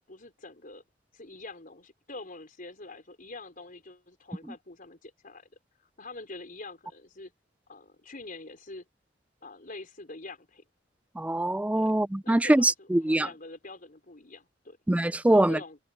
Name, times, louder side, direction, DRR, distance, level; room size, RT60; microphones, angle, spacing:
voice 1, 0.1-0.8 1.1-5.5 5.8-7.3 7.7-8.9 9.4-10.6 11.8-11.9 12.2-14.8 15.3-15.8, left 2 dB, 45° left, 4.5 m, -45 dB
voice 2, 11.2-13.3 14.9-15.6, right 1 dB, 5° right, 0.3 m, -23 dB
head